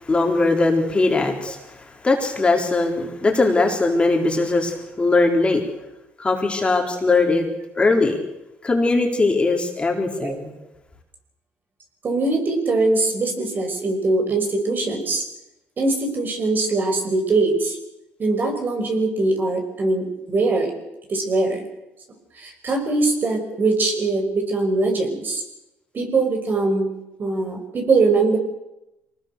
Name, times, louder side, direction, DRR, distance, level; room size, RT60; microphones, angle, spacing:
voice 1, 0.1-1.6 2.0-5.6 6.2-7.5 7.8-8.2 8.6-10.5, left 3 dB, 20° left, 1 dB, 4.0 m, -20 dB
voice 2, 12.0-15.2 15.8-17.8 18.2-20.7 21.1-21.6 22.4-25.4 25.9-26.9 27.2-28.4, right 3 dB, 40° right, 4 dB, 5.4 m, -22 dB
24.5 x 19.0 x 6.8 m, 0.93 s
cardioid pair, 105°, 5 cm